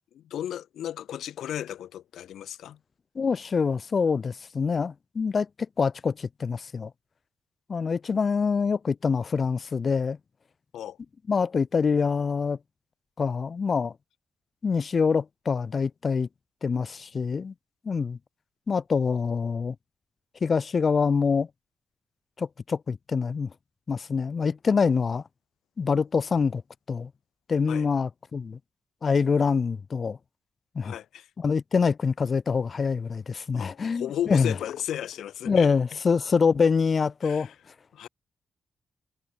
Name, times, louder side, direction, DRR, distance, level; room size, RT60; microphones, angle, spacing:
voice 1, 0.1-2.8 10.7-11.0 27.7-27.9 30.8-31.3 33.5-35.7 37.2-37.5 37.9-38.1, left 11 dB, 90° left, 1.1 m, -34 dB
voice 2, 3.1-5.5 5.8-6.9 7.7-10.2 11.3-12.6 13.2-13.9 14.6-16.3 16.6-17.5 17.8-18.2 18.7-19.7 20.4-21.5 22.4-23.5 23.9-25.2 25.8-26.6 26.9-27.1 27.5-28.6 29.0-30.2 30.7-30.9 31.4-34.5 35.5-37.5, left 5 dB, 45° left, 1.1 m, -25 dB
cardioid pair, 105°, 0 cm